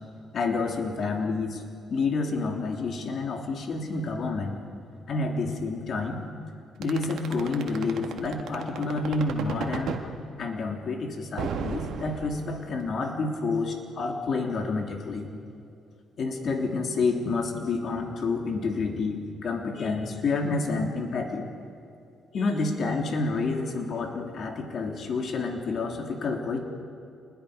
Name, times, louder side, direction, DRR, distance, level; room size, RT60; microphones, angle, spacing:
voice 1, 0.3-1.6 1.9-4.6 5.1-6.2 6.8-10.0 10.4-15.3 16.2-21.5 22.3-26.6, left 3 dB, 55° left, 2 dB, 3.1 m, -29 dB
sound 1, 6.8-10.0 11.4-12.8, right 7 dB, 75° right, 1.8 m, -33 dB
28.5 x 21.0 x 5.1 m, 2.5 s
cardioid pair, 90°, 0 cm